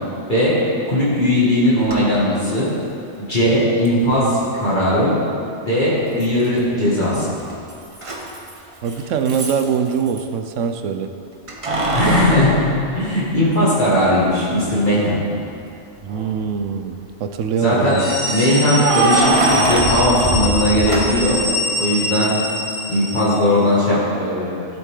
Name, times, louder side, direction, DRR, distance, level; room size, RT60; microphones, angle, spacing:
voice 1, 0.9-2.7 3.2-5.2 5.6-7.3 11.9-15.2 17.6-18.0 18.3-21.4 21.8-22.3 22.9-24.7, left 1 dB, 40° left, -10 dB, 2.3 m, -18 dB
Keys jangling, 1.9-2.0 3.8-3.9 6.2-6.7 7.0-10.2 11.5-13.6 14.1-14.2 16.0-16.5 18.5-21.4, right 2 dB, 30° right, 1.0 m, -23 dB
voice 2, 8.8-11.1 12.0-12.4 16.0-18.1 22.3-22.4, right 6 dB, 80° right, 7 dB, 1.0 m, -23 dB
sound 1, 17.8-23.5, left 1 dB, 70° left, 2.7 m, -25 dB
14.5 x 7.8 x 3.8 m, 2.6 s
omnidirectional pair, 1.3 m